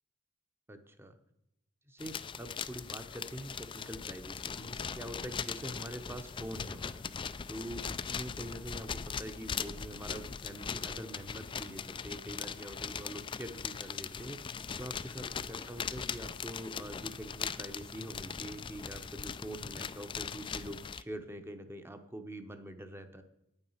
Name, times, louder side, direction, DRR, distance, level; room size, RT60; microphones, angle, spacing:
voice 1, 0.7-1.2 1.9-7.1 7.5-14.5 14.8-23.2, right 1 dB, 10° right, 8 dB, 0.8 m, -44 dB
sound 1, 2.0-21.0, left 6 dB, 25° left, 0.3 m, -40 dB
10.0 x 9.0 x 5.6 m, 0.84 s
head